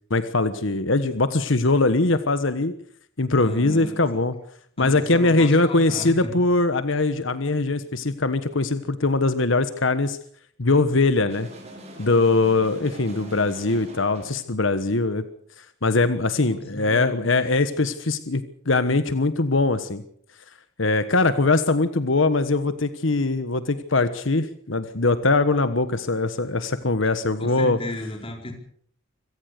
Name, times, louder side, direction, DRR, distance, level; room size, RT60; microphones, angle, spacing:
voice 1, 0.1-2.7 3.2-4.4 4.8-10.2 10.6-11.5 12.0-15.2 15.6-20.0 20.8-27.8, left 3 dB, 65° left, 11 dB, 1.3 m, -21 dB
voice 2, 3.4-4.0 4.8-6.3 16.5-17.3 27.0-27.1 27.4-28.5, left 1 dB, 30° left, 3 dB, 4.6 m, -34 dB
sound 1, 11.3-14.4, right 1 dB, 35° right, 5.8 m, -42 dB
25.5 x 17.0 x 6.7 m, 0.62 s
head